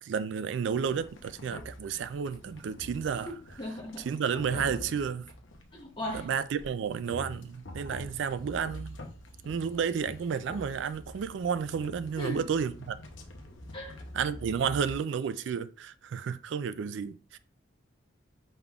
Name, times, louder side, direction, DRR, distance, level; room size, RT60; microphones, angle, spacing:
voice 1, 0.0-3.3 4.0-5.3 6.1-9.0 9.4-13.0 14.1-17.4, right 6 dB, 65° right, 0.3 m, -31 dB
sound 1, 0.6-14.9, left 1 dB, 70° left, 0.8 m, -46 dB
voice 2, 3.3-4.1 5.7-6.3 12.2-12.4 13.7-14.0, left 1 dB, 25° left, 0.7 m, -37 dB
5.6 x 3.5 x 2.3 m
head